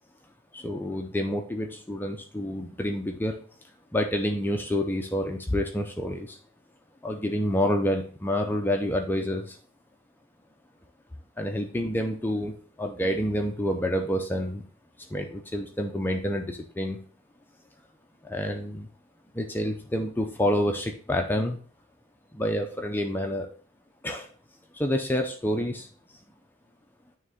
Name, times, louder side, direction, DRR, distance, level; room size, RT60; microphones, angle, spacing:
voice 1, 0.5-3.4 3.9-6.4 7.0-9.6 11.4-14.6 15.1-17.0 18.3-18.9 19.3-21.6 22.3-23.5 24.0-24.3 24.7-25.9, equal, 10° left, 3 dB, 0.5 m, -28 dB
9.3 x 3.2 x 3.7 m, 0.42 s
head